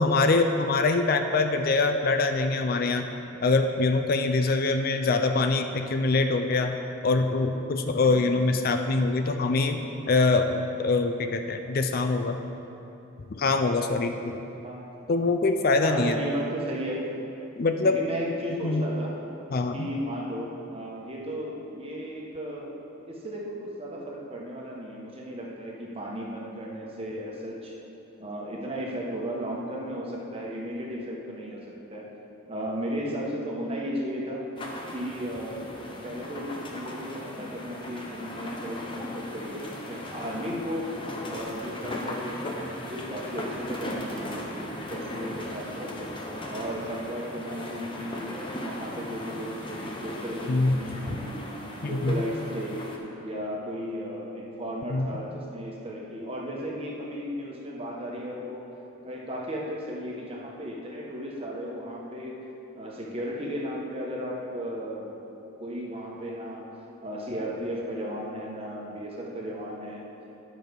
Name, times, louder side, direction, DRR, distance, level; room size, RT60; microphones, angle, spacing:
voice 1, 0.0-3.1 3.4-6.8 7.0-9.8 10.1-12.4 13.3-14.4 15.1-16.2 17.6-18.0 18.6-18.9 19.5-19.9 50.5-50.8 51.1-51.2 51.8-52.1 54.9-55.1, left 3 dB, 45° left, 6 dB, 0.4 m, -24 dB
voice 2, 15.8-17.1 17.8-19.1 19.7-22.8 23.1-27.7 28.2-32.1 32.5-34.5 34.9-40.9 41.3-44.5 44.9-46.1 46.5-51.5 51.8-52.9 53.2-58.6 59.0-62.4 62.7-65.2 65.6-66.7 67.0-70.1, equal, 30° right, -3 dB, 1.2 m, -35 dB
sound 1, 34.6-53.0, left 1 dB, 25° left, 0.8 m, -38 dB
10.0 x 6.2 x 5.2 m, 2.9 s
head